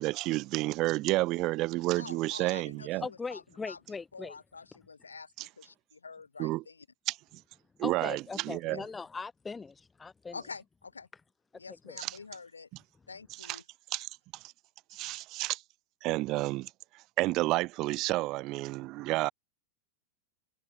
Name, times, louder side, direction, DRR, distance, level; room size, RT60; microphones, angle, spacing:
voice 1, 0.0-3.0 5.4-5.5 6.4-6.6 7.1-7.2 7.8-8.8 12.0-12.2 13.4-13.6 13.9-14.1 14.9-15.6 16.0-16.7 17.2-19.3, right 19 dB, 40° right, 4.2 m, -30 dB
voice 2, 2.0-3.8 4.1-6.8 8.6-8.8 10.3-11.1 11.5-12.7 13.1-13.6, left 4 dB, 75° left, 5.1 m, -47 dB
voice 3, 3.0-4.4 7.8-10.4 11.9-12.0, left 4 dB, 15° left, 2.1 m, -40 dB
figure-of-eight pair, 90°, 0 cm